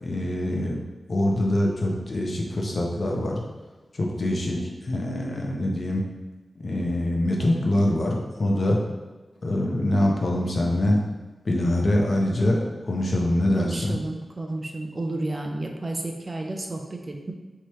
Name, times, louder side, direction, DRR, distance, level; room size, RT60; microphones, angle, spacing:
voice 1, 0.0-0.8 1.1-3.4 4.0-4.6 4.9-6.0 6.6-8.8 9.4-11.0 11.5-13.9, left 1 dB, 50° left, -1 dB, 0.7 m, -24 dB
voice 2, 13.5-17.3, right 2 dB, 30° right, 3 dB, 0.4 m, -31 dB
4.6 x 3.0 x 3.0 m, 1.2 s
wide cardioid pair, 115°, 0 cm